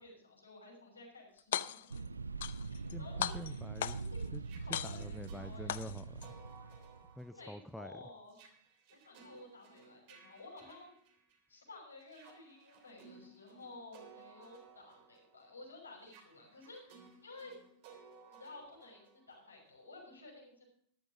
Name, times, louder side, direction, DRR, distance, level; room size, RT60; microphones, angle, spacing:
voice 1, 0.0-2.0 2.7-3.6 4.0-4.2 4.6-5.7 7.3-8.4 8.9-10.9 11.5-17.5 18.3-20.6, left 3 dB, 80° left, 0 dB, 5.9 m, -53 dB
sound 1, 1.4-2.0 2.4-2.9 3.2-4.2 4.7-5.3 5.7-6.3, left 11 dB, 60° left, 0.6 m, -38 dB
sound 2, 1.9-7.2, right 4 dB, 80° right, 0.5 m, -43 dB
sound 3, 2.7-11.6 12.0-19.8, right 5 dB, 45° right, 3.3 m, -60 dB
voice 2, 2.9-4.0 4.3-4.4 4.7-6.3 7.2-7.9, left 1 dB, ahead, 14 dB, 0.5 m, -47 dB
14.0 x 12.5 x 3.8 m, 0.65 s
figure-of-eight pair, 90°, 0 cm